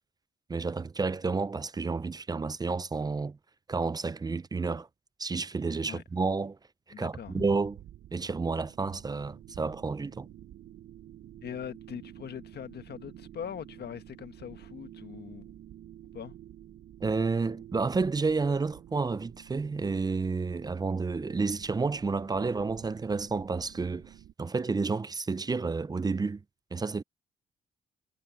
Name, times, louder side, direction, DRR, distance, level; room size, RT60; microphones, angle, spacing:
voice 1, 0.5-3.4 3.7-4.9 5.2-6.6 7.0-7.8 8.1-10.3 17.0-24.1 24.4-26.4 26.7-27.0, right 4 dB, 20° right, 0.5 m, -30 dB
voice 2, 6.9-7.5 11.4-15.5 16.1-16.3, left 8 dB, 55° left, 1.5 m, -41 dB
sound 1, 7.1-24.3, right 12 dB, 65° right, 0.8 m, -50 dB
cardioid pair, 90°, 20 cm